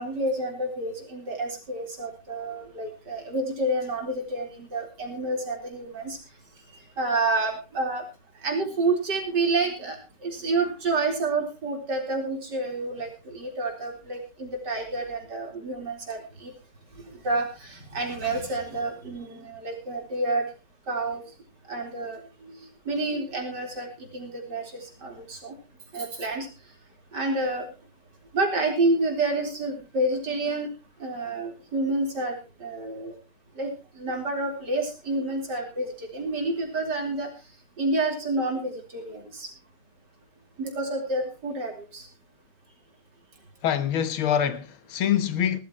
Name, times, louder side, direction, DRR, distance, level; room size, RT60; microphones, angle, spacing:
voice 1, 0.0-6.2 7.0-8.0 8.4-10.0 10.2-16.5 17.2-20.4 20.9-21.2 21.7-22.5 22.9-25.5 25.9-26.5 27.1-27.7 28.3-30.7 31.0-33.1 33.6-33.7 34.0-37.3 37.8-39.5 40.6-42.0, right 2 dB, 50° right, 4.6 m, -29 dB
voice 2, 43.6-45.6, left 9 dB, 75° left, 1.9 m, -25 dB
19.5 x 13.5 x 3.0 m
omnidirectional pair, 2.3 m